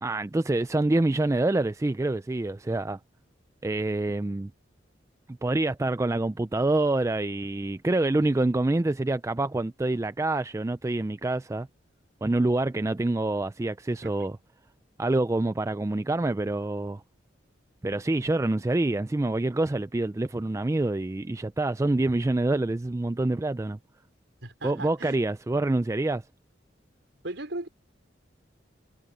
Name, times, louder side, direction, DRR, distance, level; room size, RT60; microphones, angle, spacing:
voice 1, 0.0-3.0 3.6-4.5 5.3-11.7 12.2-14.3 15.0-17.0 17.8-23.8 24.6-26.2, right 2 dB, 15° right, 0.3 m, -26 dB
voice 2, 24.4-25.2 27.2-27.7, right 2 dB, 70° right, 4.7 m, -37 dB
head